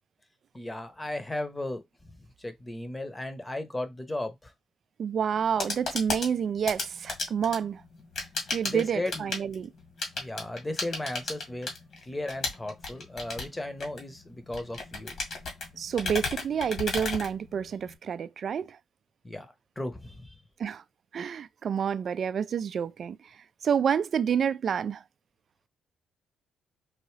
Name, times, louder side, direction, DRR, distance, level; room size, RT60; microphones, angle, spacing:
voice 1, 0.5-1.8 2.1-4.5 8.7-9.3 10.2-11.7 12.0-15.1 19.2-19.5 19.8-20.4, left 1 dB, 15° left, 0.9 m, -35 dB
voice 2, 5.0-7.8 8.5-9.7 15.8-18.8 20.6-20.8 21.1-23.4 23.6-25.0, right 7 dB, 55° right, 0.3 m, -29 dB
sound 1, 5.3-18.0, left 3 dB, 55° left, 1.9 m, -35 dB
4.7 x 2.6 x 3.2 m
cardioid pair, 90°, 0 cm